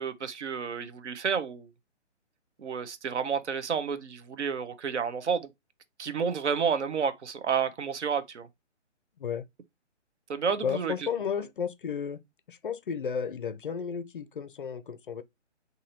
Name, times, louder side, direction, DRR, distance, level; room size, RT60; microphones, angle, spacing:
voice 1, 0.0-1.7 2.6-5.5 6.0-8.5 10.3-10.9, right 6 dB, 70° right, 0.8 m, -30 dB
voice 2, 10.6-12.2 12.5-15.2, left 7 dB, 45° left, 0.4 m, -33 dB
3.8 x 2.7 x 2.8 m
figure-of-eight pair, 140°, 36 cm